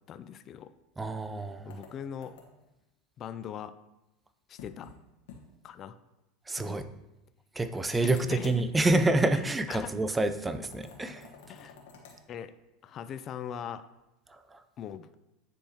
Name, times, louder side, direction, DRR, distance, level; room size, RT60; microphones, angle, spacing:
voice 1, 0.1-0.7 1.7-2.4 3.2-3.7 4.5-4.9 5.6-6.0 6.6-7.0 8.0-8.6 9.7-9.9 11.5-11.8 12.3-12.5 12.8-13.9 14.8-15.2, left 9 dB, 40° left, 12 dB, 0.4 m, -40 dB
voice 2, 1.0-1.8 6.5-6.9 7.6-11.3 14.5-14.6, right 2 dB, 15° right, 11 dB, 0.5 m, -28 dB
sound 1, 1.7-2.7 4.6-5.0 5.3-5.4 5.7-5.8 7.8-8.6 10.7-12.2, left 5 dB, 75° left, 1.4 m, -51 dB
10.0 x 3.5 x 2.9 m, 0.95 s
hypercardioid pair, 100°, 0 cm